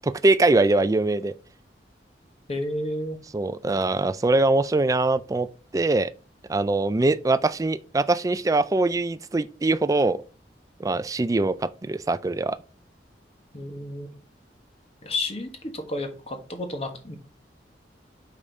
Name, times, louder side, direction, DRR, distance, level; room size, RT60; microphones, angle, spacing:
voice 1, 0.0-1.3 3.3-5.5 5.7-6.1 6.5-10.2 10.8-12.6, right 2 dB, 20° right, 0.3 m, -22 dB
voice 2, 2.5-3.2 13.5-14.2 15.0-17.2, left 1 dB, 35° left, 1.3 m, -31 dB
5.4 x 4.9 x 4.0 m
head